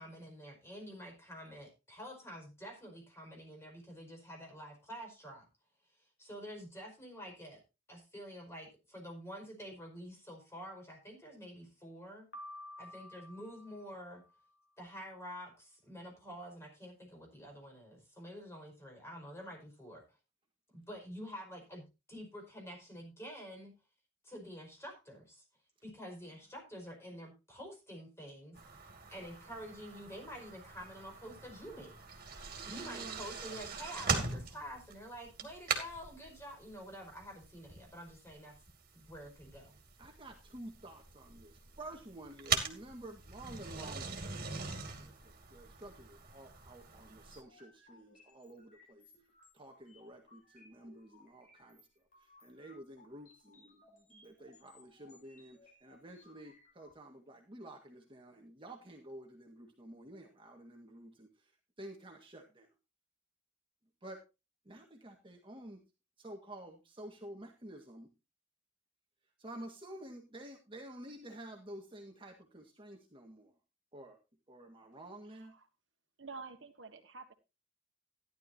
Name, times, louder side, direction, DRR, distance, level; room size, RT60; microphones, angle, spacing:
voice 1, 0.0-5.5 6.2-7.6 7.9-12.3 12.8-14.2 14.8-20.0 20.7-23.7 24.2-25.4 25.8-28.6 29.1-31.9 32.7-38.5 38.9-39.7, equal, 15° left, 1 dB, 5.0 m, -48 dB
Piano, 12.3-14.5, left 1 dB, 60° left, 2.4 m, -51 dB
sound 1, 28.5-47.4, right 5 dB, 50° right, 2.6 m, -42 dB
voice 2, 32.6-33.2 40.0-44.5 45.0-45.2 45.5-49.1 49.5-51.8 52.2-61.3 61.8-62.7 64.0-64.2 64.6-65.8 66.2-68.1 69.4-73.5 73.9-74.2 74.5-75.5, right 1 dB, 25° right, 2 dB, 1.8 m, -50 dB
sound 2, 47.3-56.9, left 3 dB, 45° left, 6.0 m, -64 dB
voice 3, 75.2-75.7 76.2-77.3, right 4 dB, 75° right, 7 dB, 1.5 m, -49 dB
14.5 x 11.0 x 2.8 m, 0.27 s
head